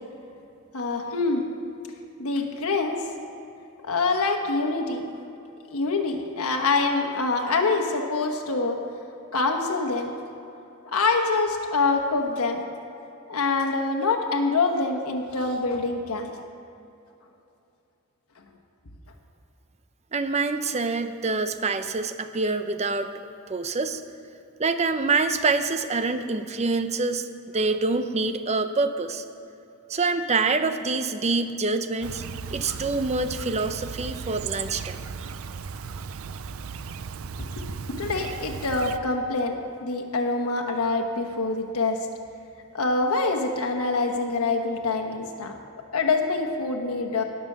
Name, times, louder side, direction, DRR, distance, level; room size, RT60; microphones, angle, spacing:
voice 1, 0.7-1.4 2.2-3.0 3.8-5.1 5.7-8.8 9.3-10.1 10.9-12.6 13.3-16.3 37.4-42.0 42.7-45.5 45.9-47.2, left 3 dB, 90° left, 3 dB, 1.2 m, -25 dB
voice 2, 20.1-23.1 23.5-24.0 24.6-27.3 27.5-29.2 29.9-32.2 32.5-35.0, right 3 dB, 30° right, 9 dB, 0.6 m, -26 dB
Chirp tweet, 32.0-39.0, right 6 dB, 70° right, 0.5 m, -36 dB
18.0 x 6.1 x 6.7 m, 2.8 s
head